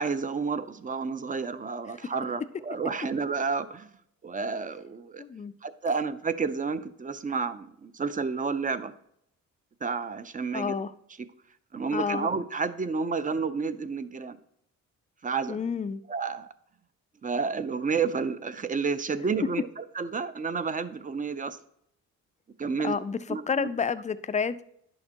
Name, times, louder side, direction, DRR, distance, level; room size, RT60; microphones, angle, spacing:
voice 1, 0.0-3.9 4.2-5.2 5.6-8.9 9.8-10.7 11.7-14.4 15.2-15.6 16.1-16.5 17.2-21.6 22.6-22.9 23.3-23.7, right 5 dB, 25° right, 0.5 m, -30 dB
voice 2, 5.2-5.5 10.5-10.9 11.9-12.3 15.5-16.0 22.8-23.2 23.5-24.7, left 6 dB, 25° left, 0.4 m, -29 dB
10.5 x 6.4 x 2.9 m
cardioid pair, 90°, 30 cm